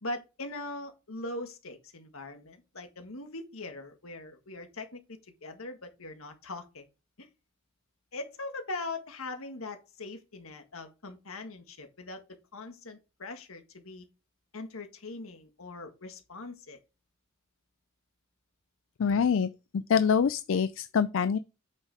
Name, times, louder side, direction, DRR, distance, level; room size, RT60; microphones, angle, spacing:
voice 1, 0.0-6.9 7.2-7.3 8.1-12.2 12.5-14.1 14.5-16.8, left 2 dB, 85° left, 1.7 m, -41 dB
voice 2, 19.0-21.4, left 6 dB, 65° left, 0.4 m, -25 dB
8.4 x 6.5 x 3.5 m
head